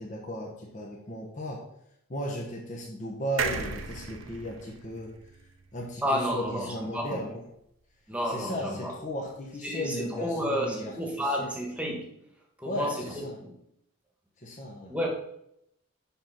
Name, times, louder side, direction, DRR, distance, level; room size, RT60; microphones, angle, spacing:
voice 1, 0.0-1.6 2.1-5.1 5.7-7.4 8.2-11.5 12.6-13.4 14.4-14.9, equal, 35° left, -1 dB, 1.0 m, -36 dB
sound 1, 3.4-6.9 7.2-7.3 7.5-7.6, right 5 dB, 75° right, 0.8 m, -36 dB
voice 2, 6.0-7.2 8.1-8.9 9.6-12.0 12.6-13.5 14.9-15.1, equal, 5° right, 0 dB, 1.4 m, -31 dB
5.8 x 5.7 x 5.7 m, 0.77 s
head